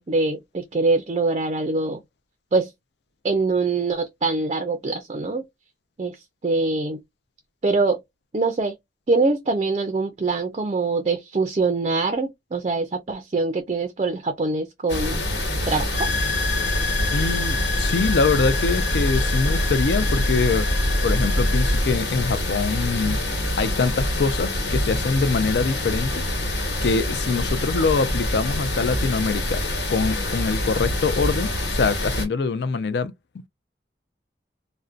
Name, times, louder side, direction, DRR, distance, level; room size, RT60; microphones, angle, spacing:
voice 1, 0.0-2.0 2.5-2.7 3.2-5.4 6.0-7.0 7.6-8.0 8.3-8.7 9.1-15.2 15.7-16.1, right 3 dB, 35° right, 0.4 m, -24 dB
sound 1, 14.9-32.3, left 1 dB, 85° left, 1.3 m, -26 dB
sound 2, 15.9-21.8, left 1 dB, 35° left, 0.9 m, -25 dB
voice 2, 17.1-20.7 21.0-23.2 23.6-26.2 26.8-29.6 29.9-33.5, left 4 dB, 70° left, 0.4 m, -24 dB
2.5 x 2.1 x 2.4 m
head